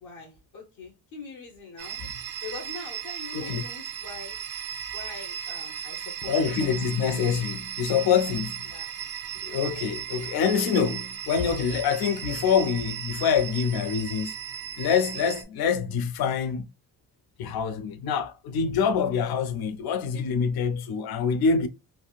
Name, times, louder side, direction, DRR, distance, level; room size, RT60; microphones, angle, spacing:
voice 1, 0.0-2.0 2.4-4.4 4.9-7.0 8.0-8.1 8.7-8.9, left 4 dB, 50° left, 1.0 m, -43 dB
sound 1, 1.8-15.4, right 9 dB, 70° right, 0.6 m, -36 dB
voice 2, 6.3-8.8 9.4-14.4 14.8-16.7 17.4-21.7, left 6 dB, 65° left, 0.5 m, -25 dB
3.5 x 2.5 x 2.3 m
cardioid pair, 130°, 39 cm